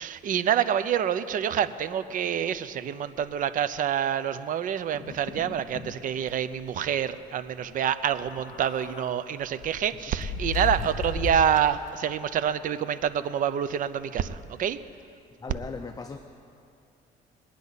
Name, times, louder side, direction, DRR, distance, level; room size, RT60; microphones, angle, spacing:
voice 1, 0.0-14.8, right 9 dB, 50° right, 13 dB, 0.6 m, -27 dB
sound 1, 4.9-5.9 6.3-6.4 6.7-6.9 8.1-9.1 9.6-11.9, left 5 dB, 45° left, 1.7 m, -35 dB
voice 2, 15.4-16.2, left 4 dB, 20° left, 6 dB, 0.6 m, -37 dB
22.0 x 9.7 x 4.1 m, 2.6 s
cardioid pair, 110°, 17 cm